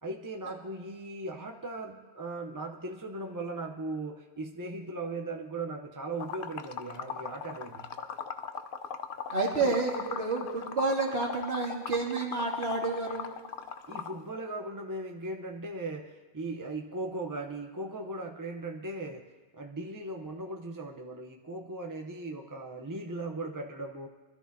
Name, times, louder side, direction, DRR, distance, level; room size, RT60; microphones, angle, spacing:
voice 1, 0.0-7.9 9.6-9.8 13.9-19.3 19.5-24.1, right 2 dB, 20° right, 2 dB, 0.6 m, -38 dB
Liquid, 6.2-14.2, left 7 dB, 55° left, 0.7 m, -38 dB
voice 2, 9.3-13.3, right 3 dB, 50° right, -2 dB, 2.2 m, -30 dB
23.5 x 13.5 x 2.7 m, 1.4 s
omnidirectional pair, 1.4 m